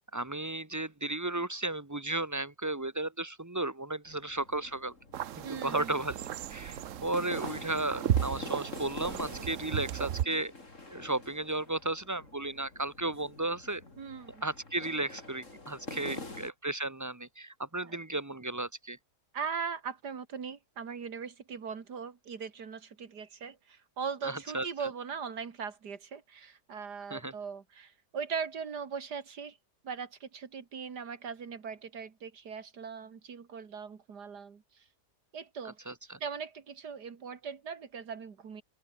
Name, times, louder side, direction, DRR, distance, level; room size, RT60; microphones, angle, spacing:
voice 1, 0.0-4.9 5.3-6.2 6.5-10.5 10.9-13.8 14.4-19.0 24.2-24.7 27.1-27.3 35.9-36.2, right 2 dB, 10° right, 1.3 m, -34 dB
sound 1, 4.1-16.5, left 2 dB, 45° left, 4.5 m, -46 dB
sound 2, 5.1-10.2, right 11 dB, 60° right, 1.0 m, -35 dB
voice 2, 5.4-6.0 9.5-9.6 14.0-14.4 16.1-16.2 17.8-18.0 19.3-29.6 29.8-34.8 35.3-35.8 36.2-38.6, right 6 dB, 75° right, 2.5 m, -40 dB
open air
omnidirectional pair, 1.7 m